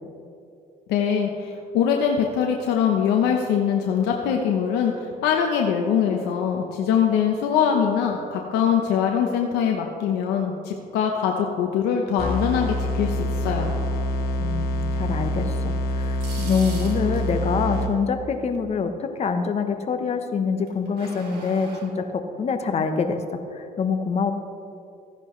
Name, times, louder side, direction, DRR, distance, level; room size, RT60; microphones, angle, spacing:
voice 1, 0.9-13.7, left 7 dB, 90° left, 1 dB, 0.9 m, -23 dB
sound 1, 12.2-18.2, equal, 60° left, 1.5 m, -26 dB
voice 2, 14.4-15.6 15.9-24.3, left 5 dB, 40° left, 7 dB, 1.0 m, -25 dB
sound 2, 15.9-17.4 20.7-21.8, right 3 dB, 70° right, 2.9 m, -40 dB
15.0 x 10.5 x 3.2 m, 2.6 s
cardioid pair, 110°, 17 cm